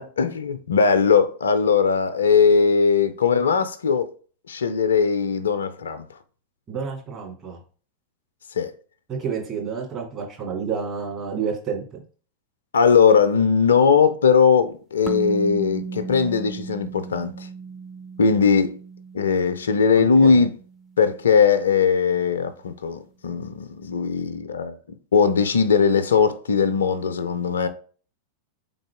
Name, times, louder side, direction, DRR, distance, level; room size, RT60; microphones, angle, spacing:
voice 1, 0.0-4.1 4.5-6.0 8.6-8.7 12.7-17.3 18.2-18.8 19.1-20.5 21.0-24.8 25.1-27.7, left 6 dB, 70° left, 0.4 m, -19 dB
voice 2, 6.7-7.6 9.1-12.0 19.9-20.5, right 6 dB, 30° right, 2.0 m, -30 dB
sound 1, 15.1-21.5, right 5 dB, 10° right, 0.6 m, -36 dB
3.9 x 3.7 x 3.4 m
figure-of-eight pair, 90°, 0 cm